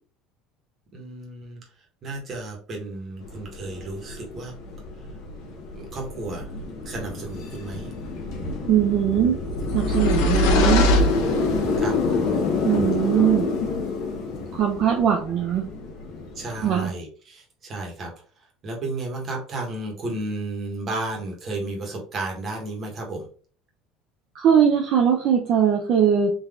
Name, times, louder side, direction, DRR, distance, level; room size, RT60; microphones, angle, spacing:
voice 1, 0.9-1.6 2.0-4.5 5.7-6.5 6.8-7.9 9.9-10.0 11.8-11.9 16.3-18.1 18.6-23.3, right 2 dB, 30° right, -1 dB, 1.5 m, -33 dB
sound 1, 3.2-16.7, left 4 dB, 50° left, 1.1 m, -28 dB
voice 2, 8.7-9.4 9.7-10.9 12.6-13.5 14.5-15.6 16.6-16.9 24.3-26.3, right 8 dB, 45° right, 0 dB, 0.7 m, -20 dB
Fly by sd, 9.5-11.9, left 1 dB, 75° left, 1.0 m, -22 dB
3.9 x 2.8 x 3.6 m, 0.42 s
cardioid pair, 160°, 0 cm